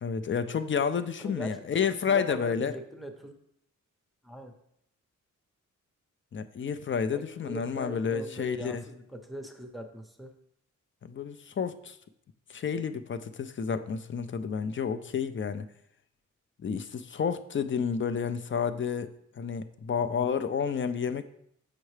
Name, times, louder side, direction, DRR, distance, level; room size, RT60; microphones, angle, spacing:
voice 1, 0.0-2.8 6.3-8.8 11.0-12.0 12.5-15.6 16.6-21.2, left 6 dB, 40° left, 10 dB, 0.4 m, -30 dB
voice 2, 1.2-3.3 4.2-4.5 7.1-10.3 19.9-20.4, equal, ahead, 4 dB, 0.6 m, -42 dB
6.3 x 5.7 x 3.2 m, 0.74 s
wide cardioid pair, 135°, 31 cm